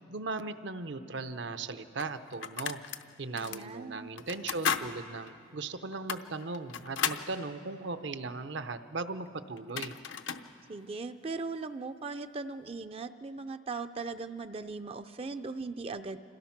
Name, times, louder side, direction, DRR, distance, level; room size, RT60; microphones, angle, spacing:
voice 1, 0.1-2.8 3.2-10.0, right 3 dB, 65° right, 11 dB, 0.7 m, -38 dB
sound 1, 1.2-1.3 2.0-3.0 3.4-3.6 4.2-4.9 5.3-5.4 5.9-7.3 9.3-9.4 9.6-10.5, left 7 dB, 75° left, 0.8 m, -34 dB
voice 2, 3.3-4.1 10.7-16.2, right 3 dB, 30° right, 10 dB, 0.5 m, -39 dB
26.5 x 17.5 x 5.9 m, 2.5 s
head